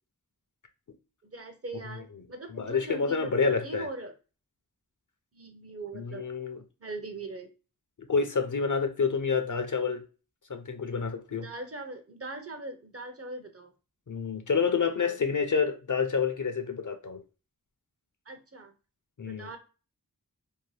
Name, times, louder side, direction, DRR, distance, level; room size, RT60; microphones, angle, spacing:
voice 1, 1.2-4.1 5.3-6.3 6.8-7.5 11.3-13.7 15.0-15.2 18.3-18.7 19.2-19.6, right 2 dB, 40° right, 0.7 m, -41 dB
voice 2, 2.5-3.9 5.9-6.6 8.1-10.0 10.5-11.5 14.1-17.2 19.2-19.5, left 5 dB, 55° left, 0.5 m, -28 dB
2.7 x 2.1 x 3.2 m
wide cardioid pair, 40°, 37 cm